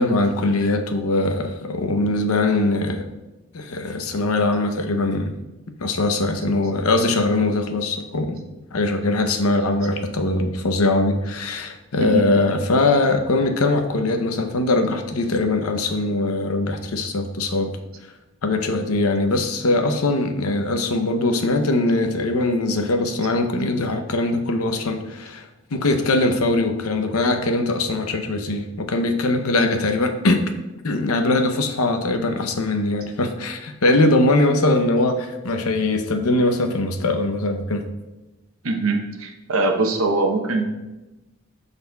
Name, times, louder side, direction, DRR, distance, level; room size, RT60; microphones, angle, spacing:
voice 1, 0.0-3.1 3.5-5.3 5.8-8.4 8.7-17.7 18.4-25.5 25.7-37.8, left 2 dB, 85° left, 6 dB, 0.7 m, -21 dB
voice 2, 12.0-12.3 38.6-40.6, right 3 dB, 80° right, 3 dB, 0.9 m, -22 dB
12.5 x 4.1 x 2.3 m, 1.0 s
head